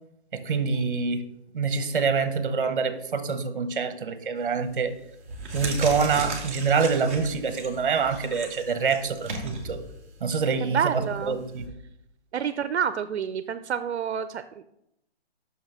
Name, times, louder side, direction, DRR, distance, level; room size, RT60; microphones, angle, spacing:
voice 1, 0.3-1.2 1.5-4.9 5.5-9.8 10.2-10.9 11.3-11.7, right 5 dB, 50° right, 11 dB, 1.0 m, -26 dB
sound 1, 4.4-4.7 5.2-11.7, right 2 dB, 10° right, 0.7 m, -37 dB
voice 2, 10.6-11.4 12.3-14.6, right 8 dB, 80° right, 12 dB, 0.6 m, -28 dB
6.2 x 5.8 x 5.6 m, 0.79 s
hypercardioid pair, 175°, 33 cm